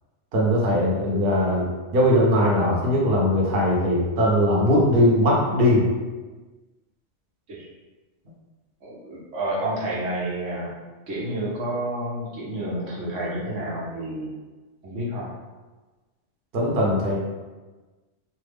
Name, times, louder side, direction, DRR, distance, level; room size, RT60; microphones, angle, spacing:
voice 1, 0.3-5.9 16.5-17.2, left 1 dB, 55° right, -4 dB, 0.9 m, -20 dB
voice 2, 8.8-10.7 11.1-14.3 14.8-15.3, right 1 dB, 80° right, -5 dB, 1.1 m, -29 dB
3.2 x 2.1 x 3.3 m, 1.2 s
omnidirectional pair, 1.2 m